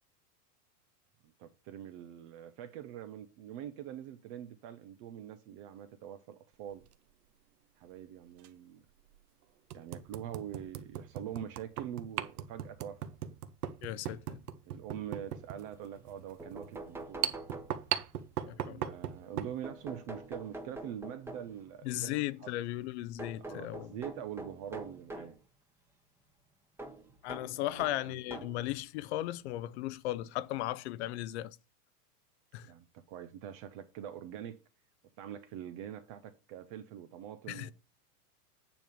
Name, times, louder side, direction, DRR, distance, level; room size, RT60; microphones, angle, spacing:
voice 1, 1.4-6.8 7.8-8.8 9.7-13.0 14.7-17.3 18.5-22.1 22.4-22.5 23.4-25.4 27.7-28.4 32.6-34.6 35.2-37.7, right 10 dB, 25° right, 0.3 m, -44 dB
sound 1, 6.7-6.9 8.4-8.5 9.1-9.2 9.7-19.6, right 10 dB, 70° right, 1.0 m, -39 dB
voice 2, 13.8-14.4 18.5-18.9 21.8-23.9 27.2-31.6 32.5-32.7 37.5-37.7, left 15 dB, 45° left, 0.5 m, -36 dB
sound 2, 16.1-16.2 16.4-18.1 19.6-21.7 23.2-25.4 26.8-28.7 29.5-29.6 30.9-31.0 31.4-31.5, right 2 dB, 5° right, 0.9 m, -45 dB
9.3 x 3.5 x 6.8 m
hypercardioid pair, 120°, 47 cm